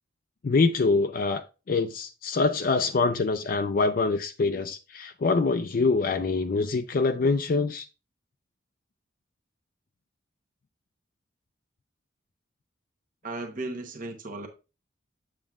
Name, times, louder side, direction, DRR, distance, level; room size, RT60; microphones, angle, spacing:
voice 1, 0.4-7.9, left 3 dB, 45° left, 0.4 m, -25 dB
voice 2, 13.2-14.5, right 2 dB, 45° right, 0.9 m, -35 dB
7.3 x 7.2 x 2.3 m
head